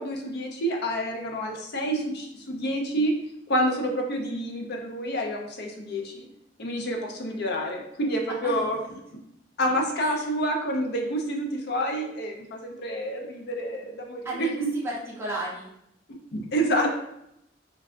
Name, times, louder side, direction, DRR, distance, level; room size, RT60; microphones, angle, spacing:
voice 1, 0.0-3.1 3.5-6.3 6.6-8.8 9.6-14.7 16.3-17.0, equal, 60° left, 1 dB, 0.5 m, -28 dB
voice 2, 8.3-8.6 10.0-10.3 14.2-15.7, right 1 dB, 15° right, -6 dB, 0.6 m, -34 dB
3.2 x 2.4 x 2.4 m, 0.78 s
head